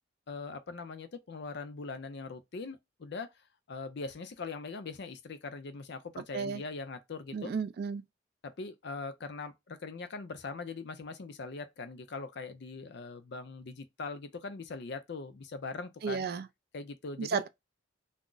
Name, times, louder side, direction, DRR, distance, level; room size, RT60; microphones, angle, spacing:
voice 1, 0.3-3.3 3.7-7.5 8.4-16.3 16.7-17.4, left 4 dB, 55° left, 0.5 m, -41 dB
voice 2, 7.3-8.0 16.0-16.4 17.2-17.5, right 5 dB, 50° right, 0.3 m, -33 dB
2.4 x 2.0 x 3.8 m
head